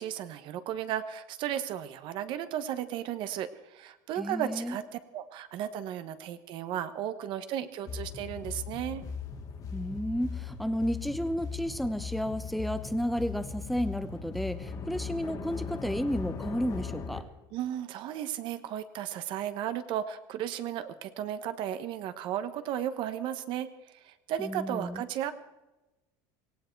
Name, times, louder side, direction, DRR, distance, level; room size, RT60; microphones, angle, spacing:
voice 1, 0.0-9.0 17.5-25.3, right 10 dB, 55° right, 11 dB, 1.2 m, -35 dB
voice 2, 4.2-4.8 9.7-17.2 24.4-25.0, equal, ahead, 11 dB, 1.0 m, -32 dB
sound 1, 7.9-17.2, left 6 dB, 40° left, 2.2 m, -39 dB
18.0 x 16.5 x 4.6 m, 1.1 s
cardioid pair, 140°, 10 cm